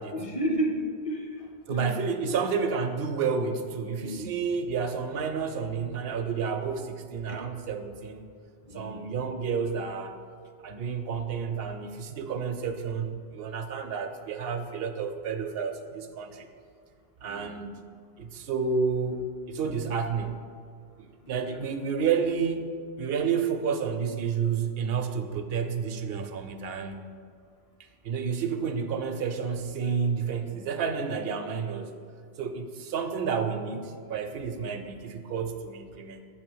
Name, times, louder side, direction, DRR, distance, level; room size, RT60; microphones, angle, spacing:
voice 1, 0.1-2.0 4.0-4.3 7.3-7.5 8.6-9.1 17.2-17.6 21.2-21.6, equal, 35° left, 2 dB, 0.7 m, -33 dB
voice 2, 1.7-8.3 8.7-10.2 10.6-16.5 17.2-17.9 18.2-20.4 21.0-27.0 28.0-31.9 32.4-36.2, right 6 dB, 70° right, 7 dB, 0.8 m, -30 dB
7.2 x 4.0 x 6.1 m, 2.1 s
omnidirectional pair, 1.1 m